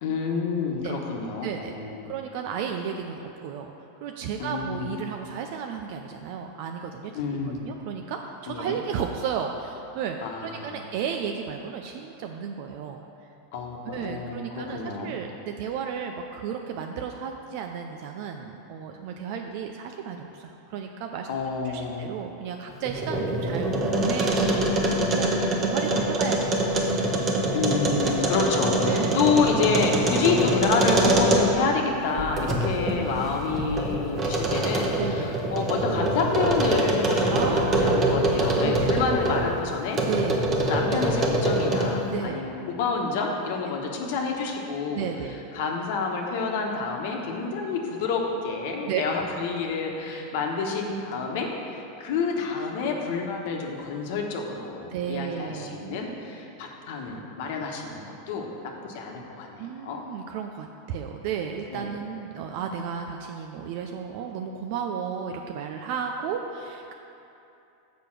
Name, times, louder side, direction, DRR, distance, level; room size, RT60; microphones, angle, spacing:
voice 1, 0.0-2.1 4.4-4.9 7.1-7.7 8.5-8.8 10.2-10.8 13.5-15.1 21.3-22.0 27.5-40.0 40.6-45.1 45.5-60.0 61.7-61.9, left 4 dB, 65° left, 1 dB, 1.1 m, -28 dB
voice 2, 1.4-1.7 2.1-3.7 4.0-7.1 7.7-13.0 13.9-21.3 21.6-24.8 25.1-27.1 28.1-28.3 28.8-29.2 34.9-35.4 37.3-38.1 38.6-39.0 40.1-40.4 42.1-42.4 44.9-45.4 48.9-49.0 54.9-55.8 59.6-66.9, right 7 dB, 60° right, 3 dB, 0.4 m, -33 dB
sound 1, 22.7-31.7 32.2-39.5 39.9-42.0, right 1 dB, 30° right, 1.1 m, -24 dB
6.6 x 5.1 x 6.0 m, 2.8 s
supercardioid pair, 120°, 0 cm